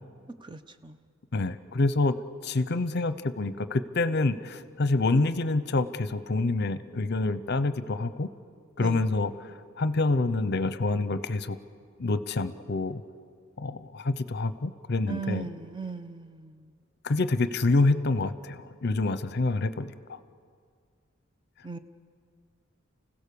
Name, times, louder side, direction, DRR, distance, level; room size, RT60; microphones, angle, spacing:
voice 1, 0.4-1.0 8.8-9.0 15.1-16.7 21.6-21.8, right 5 dB, 20° right, 9 dB, 0.8 m, -38 dB
voice 2, 1.3-2.2 2.4-8.3 8.8-11.6 12.0-13.0 13.6-15.4 17.0-20.2, left 3 dB, 50° left, 14 dB, 0.7 m, -27 dB
29.5 x 16.5 x 6.9 m, 2.1 s
head